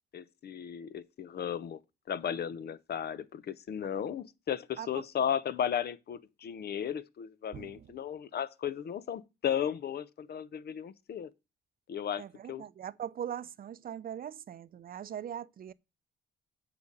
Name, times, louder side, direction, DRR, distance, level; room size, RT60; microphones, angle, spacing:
voice 1, 0.1-1.8 2.1-11.3 11.9-12.6, left 9 dB, 55° left, 0.8 m, -35 dB
voice 2, 7.5-7.9 12.2-15.7, right 9 dB, 45° right, 0.6 m, -41 dB
7.9 x 5.2 x 6.7 m
cardioid pair, 90°, 20 cm